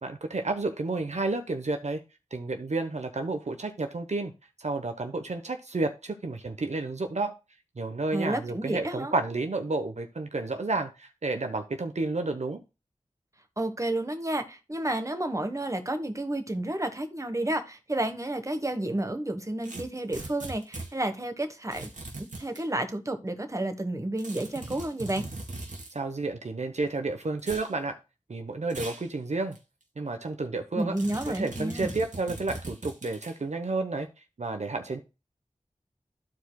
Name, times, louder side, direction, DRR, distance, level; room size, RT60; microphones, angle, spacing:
voice 1, 0.0-2.0 2.3-4.3 4.6-7.3 7.8-12.6 25.9-27.9 28.3-29.6 30.0-31.0 31.3-34.1 34.4-35.0, right 3 dB, 65° right, 1.0 m, -31 dB
voice 2, 8.1-9.1 13.6-21.9 22.2-25.3 30.7-32.0, right 1 dB, 25° right, 1.3 m, -31 dB
sound 1, 19.6-20.9 21.7-22.6 24.2-25.9 27.4-27.7 28.7-29.1 29.5-29.6 31.0-33.4, right 2 dB, 80° right, 2.0 m, -40 dB
14.0 x 4.7 x 2.3 m
wide cardioid pair, 50°, 13 cm